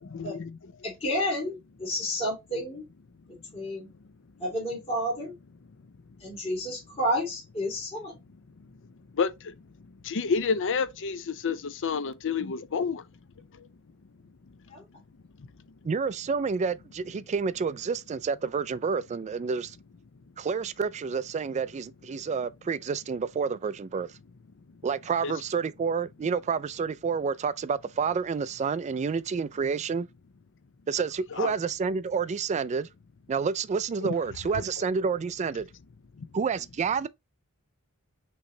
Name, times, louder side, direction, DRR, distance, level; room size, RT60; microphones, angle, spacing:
voice 1, 0.0-0.6 2.5-2.6 8.6-8.7 9.1-9.5 9.9-13.0 13.6-13.7 15.4-15.5 25.2-25.3 31.3-31.5 34.0-34.1 36.2-36.3, left 5 dB, 60° left, 0.6 m, -30 dB
voice 2, 0.8-2.9 3.5-3.9 4.4-5.3 6.2-8.1 14.7-14.8, equal, 25° left, 2.4 m, -30 dB
voice 3, 15.8-19.8 20.4-24.1 24.8-30.1 30.9-32.9 33.3-35.7 36.3-37.1, right 5 dB, 30° right, 0.3 m, -29 dB
5.9 x 3.1 x 2.7 m
head